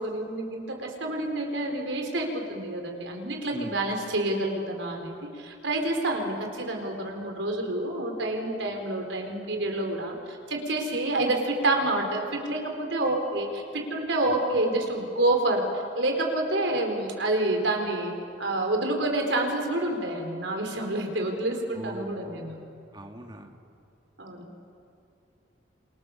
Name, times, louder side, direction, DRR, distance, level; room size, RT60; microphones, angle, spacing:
voice 1, 0.0-15.7 16.0-22.6 24.2-24.5, right 2 dB, 90° right, 3 dB, 4.3 m, -28 dB
voice 2, 3.5-3.9 14.3-14.6 21.7-22.6 22.9-23.6, right 1 dB, 25° right, 3 dB, 2.1 m, -42 dB
30.0 x 27.0 x 7.2 m, 2.5 s
head